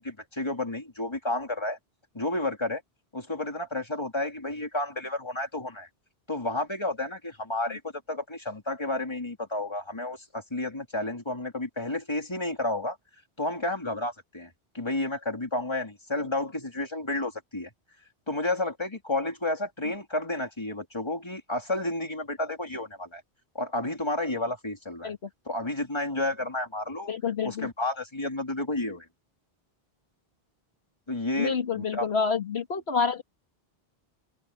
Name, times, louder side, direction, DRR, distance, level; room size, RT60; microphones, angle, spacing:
voice 1, 0.0-1.8 2.1-2.8 3.1-5.9 6.3-7.8 8.1-13.0 13.4-14.5 14.7-17.7 18.3-23.2 23.5-25.1 25.4-27.1 27.4-29.1 31.1-32.1, left 2 dB, 25° left, 3.1 m, -31 dB
voice 2, 27.1-27.7 31.4-33.2, left 5 dB, 80° left, 1.8 m, -28 dB
omnidirectional pair, 1.1 m